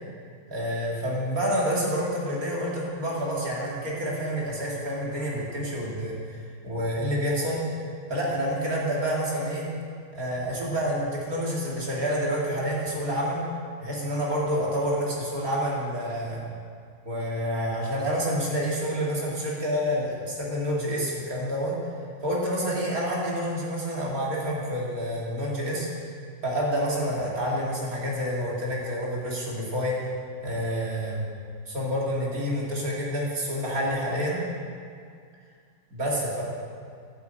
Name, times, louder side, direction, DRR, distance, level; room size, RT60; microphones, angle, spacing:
voice 1, 0.5-6.1 6.6-7.6 8.1-9.7 10.1-13.4 13.8-16.4 17.0-21.8 22.2-25.9 26.4-30.0 30.4-31.2 31.7-34.4 35.9-36.4, equal, 40° right, -5 dB, 3.0 m, -28 dB
11.5 x 8.1 x 8.5 m, 2.2 s
omnidirectional pair, 2.4 m